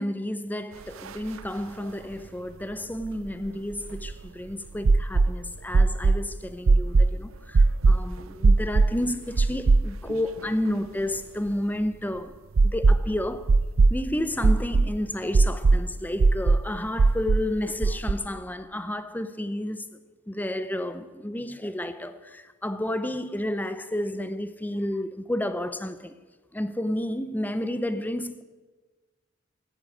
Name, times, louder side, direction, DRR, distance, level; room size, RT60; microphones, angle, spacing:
voice 1, 0.0-12.3 12.6-13.6 13.9-19.9 20.3-26.1 26.5-28.4, left 1 dB, 10° left, 0.7 m, -31 dB
sound 1, 1.1-1.2 1.4-1.5 3.0-4.3 4.8-5.3 5.7-6.2 6.7-7.1 7.5-8.0 8.4-8.9 9.4-10.1 10.5-10.6 12.6-13.1 13.5-14.0 14.4-14.9 15.3-15.8 16.2-16.6 17.0-17.4 17.8-18.1, right 3 dB, 80° right, 0.5 m, -19 dB
14.0 x 8.8 x 8.8 m
head